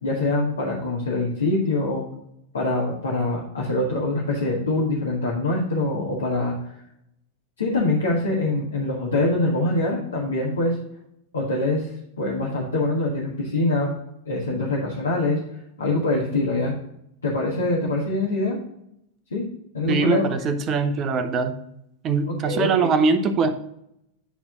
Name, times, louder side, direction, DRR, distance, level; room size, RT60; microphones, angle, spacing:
voice 1, 0.0-2.0 2.5-6.5 7.6-10.8 11.3-11.9 12.2-13.9 14.3-15.4 15.8-16.7 17.2-18.6 19.3-19.5 19.7-20.3 22.3-22.9, left 2 dB, 70° left, -4 dB, 1.7 m, -24 dB
voice 2, 19.9-21.6 22.0-23.5, right 4 dB, 30° right, 9 dB, 0.9 m, -22 dB
10.0 x 4.4 x 3.9 m, 0.77 s
figure-of-eight pair, 90°, 0 cm